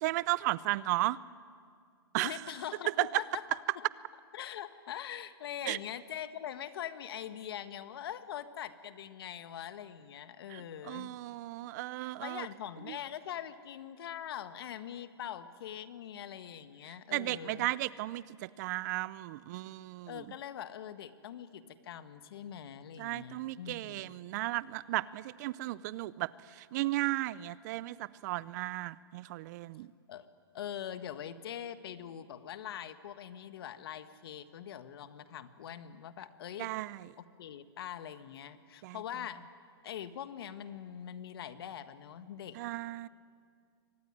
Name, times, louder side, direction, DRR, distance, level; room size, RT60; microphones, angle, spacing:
voice 1, 0.0-1.2 2.1-2.4 3.0-3.2 5.7-5.8 10.5-12.5 17.1-20.2 23.0-29.9 36.6-37.1 38.8-39.0 42.5-43.1, right 17 dB, 40° right, 20 dB, 0.6 m, -35 dB
voice 2, 2.2-3.9 4.3-11.2 12.2-17.7 20.1-24.2 30.1-30.3 30.5-36.7 37.2-39.5 39.8-42.6, left 10 dB, 60° left, 11 dB, 1.6 m, -43 dB
24.0 x 19.0 x 9.9 m, 2.1 s
hypercardioid pair, 135°, 14 cm